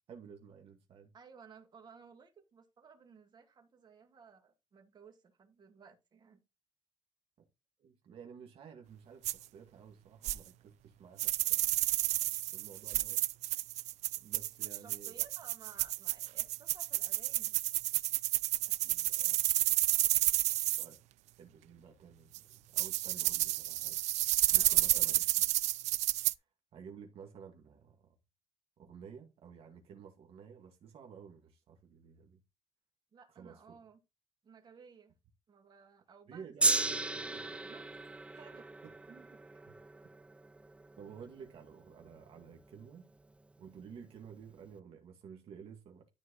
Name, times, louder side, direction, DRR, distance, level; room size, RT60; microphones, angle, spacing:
voice 1, 0.1-1.1 7.8-11.9 12.5-13.3 14.2-15.2 18.6-19.4 20.8-21.0 21.4-24.0 24.5-25.5 25.9-26.1 26.7-28.1 28.8-32.4 33.3-33.6 36.3-37.6 38.8-38.9 39.7-39.8 41.0-43.1 43.6-46.1, right 7 dB, 55° right, 2.1 m, -53 dB
voice 2, 1.1-6.4 14.6-17.5 24.5-25.1 33.1-34.0 34.4-35.1 35.5-36.7 37.4-37.9 38.3-38.7 39.1-39.4, right 6 dB, 40° right, 2.0 m, -57 dB
sound 1, 9.2-9.3 10.2-10.4 11.2-20.9 22.3-22.4 22.8-26.3, right 16 dB, 85° right, 0.5 m, -31 dB
Gong, 36.6-43.0 43.7-43.8, right 2 dB, 10° right, 0.5 m, -36 dB
13.0 x 4.6 x 4.1 m
cardioid pair, 145°, 11 cm